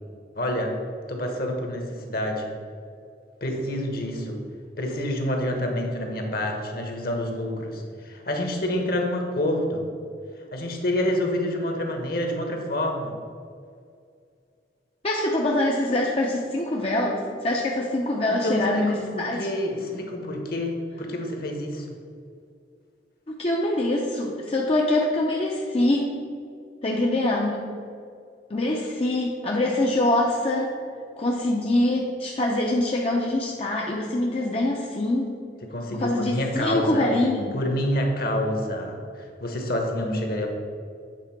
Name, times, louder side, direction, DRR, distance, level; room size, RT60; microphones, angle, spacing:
voice 1, 0.3-0.8 1.1-2.5 3.4-4.4 4.8-9.9 10.5-13.1 18.3-18.6 19.1-21.9 35.7-37.1 37.5-40.5, left 1 dB, 55° left, 2 dB, 1.1 m, -27 dB
voice 2, 15.0-19.5 23.3-26.1 26.8-27.7 28.5-30.8 31.2-35.4 35.9-37.6, left 1 dB, 30° left, -2 dB, 0.6 m, -24 dB
8.2 x 3.6 x 5.8 m, 2.3 s
head